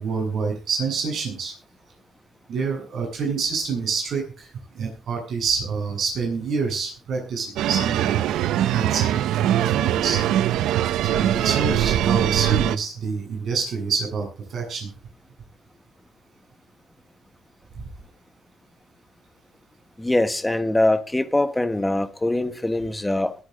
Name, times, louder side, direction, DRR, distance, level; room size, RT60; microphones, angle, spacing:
voice 1, 0.0-1.5 2.5-4.5 4.7-8.2 8.7-10.2 11.1-14.9 17.8-17.9, right 5 dB, 65° right, 7.8 m, -27 dB
sound 1, 7.6-12.8, right 12 dB, 85° right, 0.7 m, -22 dB
voice 2, 20.0-23.3, left 1 dB, 10° left, 1.3 m, -23 dB
21.5 x 9.3 x 3.8 m
cardioid pair, 90°, 0 cm